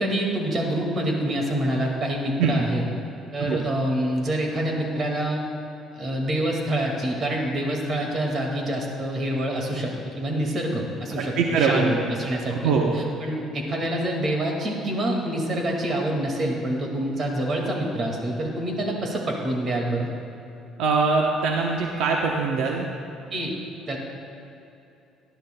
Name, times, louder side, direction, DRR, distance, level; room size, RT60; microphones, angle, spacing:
voice 1, 0.0-2.8 3.3-5.4 5.9-12.6 12.9-20.1 23.3-23.6 23.9-24.0, right 1 dB, 40° right, 0 dB, 2.0 m, -26 dB
voice 2, 11.2-12.0 12.5-13.0 20.8-22.9, right 4 dB, 85° right, 0 dB, 0.9 m, -23 dB
17.5 x 11.5 x 2.2 m, 2.8 s
cardioid pair, 125°, 0 cm